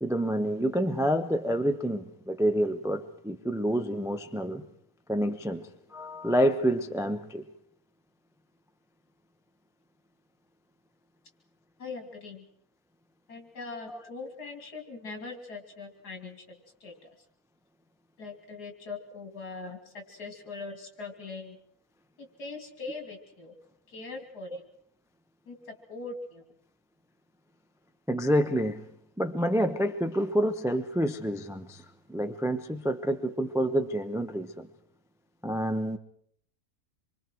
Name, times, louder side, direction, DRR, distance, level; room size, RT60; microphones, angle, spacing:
voice 1, 0.0-4.6 5.1-5.6 5.9-7.4 13.9-14.0 28.1-28.8 29.2-31.8 32.1-34.7 35.4-36.0, equal, 5° right, 7 dB, 0.6 m, -28 dB
voice 2, 11.8-12.5 13.3-16.9 18.2-21.6 22.2-23.5 23.9-24.7 25.5-26.4, left 3 dB, 80° left, 4 dB, 3.5 m, -41 dB
26.5 x 24.0 x 4.6 m, 0.63 s
omnidirectional pair, 1.7 m